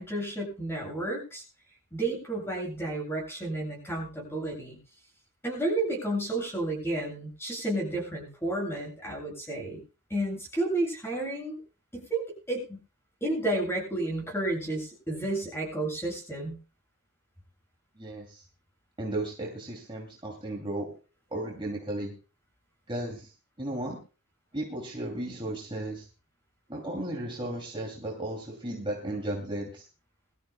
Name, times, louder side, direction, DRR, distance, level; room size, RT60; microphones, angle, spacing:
voice 1, 0.0-1.4 1.9-4.8 5.4-9.8 10.1-11.6 11.9-12.8 13.2-16.6, right 2 dB, 10° left, -1 dB, 7.5 m, -31 dB
voice 2, 18.0-18.4 19.0-20.9 21.3-22.1 22.9-23.3 23.6-24.0 24.5-26.1 26.7-29.8, right 1 dB, 25° right, -1 dB, 2.7 m, -35 dB
23.0 x 13.5 x 2.3 m, 0.33 s
head